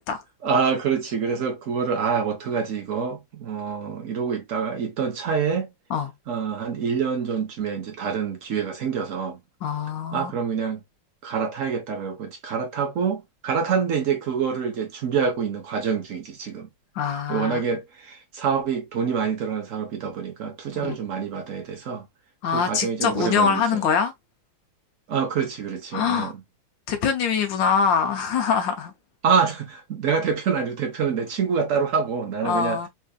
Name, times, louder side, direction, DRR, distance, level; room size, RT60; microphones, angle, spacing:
voice 1, 0.4-5.7 6.3-9.4 10.1-10.8 11.2-16.7 17.3-22.1 22.5-23.8 25.1-26.4 29.2-32.9, right 6 dB, 70° right, 0.7 m, -26 dB
voice 2, 9.6-10.3 16.9-17.6 20.8-20.9 22.4-24.1 25.9-26.3 26.9-28.9 32.4-32.9, left 6 dB, 70° left, 1.4 m, -23 dB
4.3 x 2.6 x 2.3 m
omnidirectional pair, 2.2 m